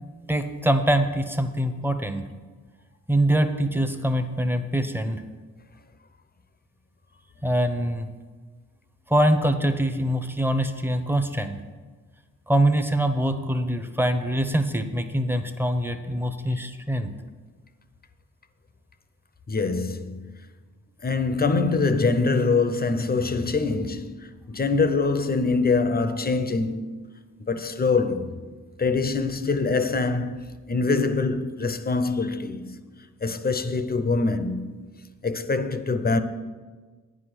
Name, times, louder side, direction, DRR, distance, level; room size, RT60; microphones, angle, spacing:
voice 1, 0.3-2.3 3.1-5.2 7.4-8.1 9.1-11.6 12.5-17.1, right 1 dB, 5° right, 0.9 m, -24 dB
voice 2, 19.5-20.5 21.0-26.9 27.4-28.4 28.8-32.8 33.2-34.7 35.2-36.2, left 4 dB, 30° left, 0.7 m, -24 dB
9.5 x 5.0 x 7.8 m
cardioid pair, 60°, 32 cm